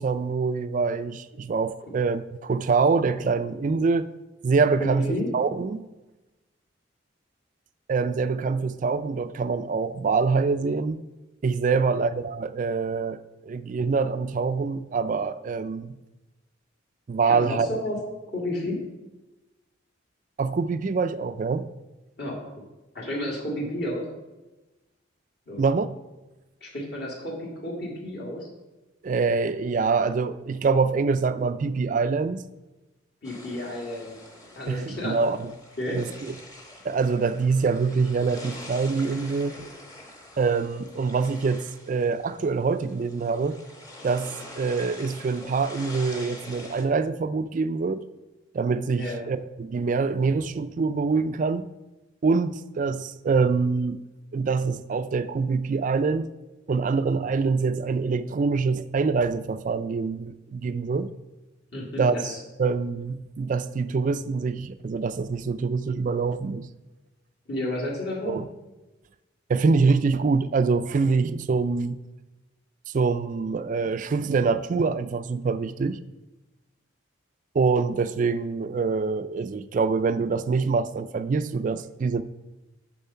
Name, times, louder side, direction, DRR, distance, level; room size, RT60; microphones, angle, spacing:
voice 1, 0.0-4.1 4.4-5.9 7.9-11.0 11.4-15.9 17.1-17.7 20.4-21.7 25.6-25.9 29.0-32.4 34.7-35.5 35.9-36.3 36.8-39.6 40.4-43.6 44.0-48.0 48.5-51.7 52.2-54.0 54.3-56.3 56.7-61.1 62.0-62.2 62.6-66.7 68.2-68.5 69.5-72.0 72.9-76.0 77.5-82.2, right 4 dB, 40° right, 0.3 m, -25 dB
voice 2, 4.8-5.3 11.7-11.8 17.2-18.0 18.3-18.8 22.2-22.6 22.9-24.1 25.5-25.6 26.6-28.5 33.2-34.1 34.6-35.2 35.8-36.0 49.0-49.2 61.7-62.4 67.5-68.4, left 1 dB, 55° left, 2.0 m, -31 dB
sound 1, 33.2-46.8, left 1 dB, 20° left, 1.0 m, -45 dB
6.9 x 6.4 x 5.5 m
head